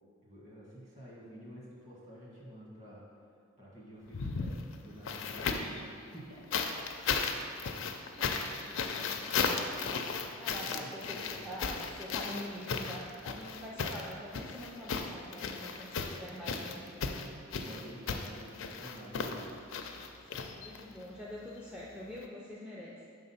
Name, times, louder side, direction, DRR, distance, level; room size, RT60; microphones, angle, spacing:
voice 1, 0.2-3.0 3.6-5.8 6.1-6.4 10.4-11.4 17.6-19.5, equal, 35° right, -5 dB, 1.7 m, -50 dB
sound 1, 4.1-5.8 6.5-21.0 22.2-22.3, left 5 dB, 65° left, 0.4 m, -35 dB
voice 2, 8.2-10.0 10.3-17.1 20.5-23.0, equal, 5° right, -5 dB, 0.4 m, -46 dB
6.0 x 3.8 x 5.6 m, 2.3 s
head